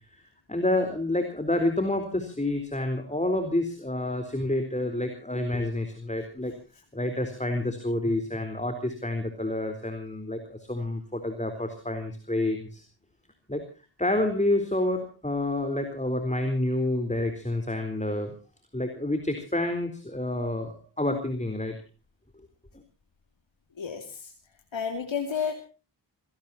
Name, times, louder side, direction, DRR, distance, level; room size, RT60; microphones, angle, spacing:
voice 1, 0.5-6.5 6.9-12.8 13.5-13.6 14.0-18.3 18.7-21.8, left 1 dB, 15° left, 7 dB, 3.9 m, -28 dB
voice 2, 23.8-24.3 24.7-25.5, left 6 dB, 80° left, 4 dB, 2.7 m, -31 dB
27.5 x 18.0 x 2.8 m, 0.35 s
cardioid pair, 50°, 45 cm